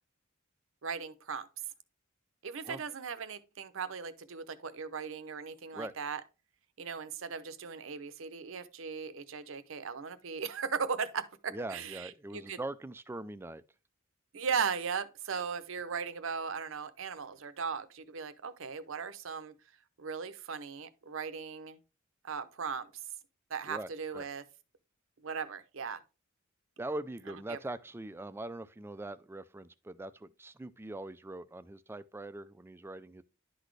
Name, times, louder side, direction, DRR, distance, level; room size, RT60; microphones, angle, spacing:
voice 1, 0.8-1.5 2.4-6.2 6.8-12.6 14.3-19.5 20.0-21.8 22.2-22.9 23.5-24.4 25.2-26.0 27.5-27.6, right 6 dB, 65° right, 0.7 m, -37 dB
voice 2, 11.5-13.6 23.7-24.3 26.8-33.2, right 2 dB, 10° right, 0.3 m, -42 dB
11.0 x 4.1 x 3.2 m
head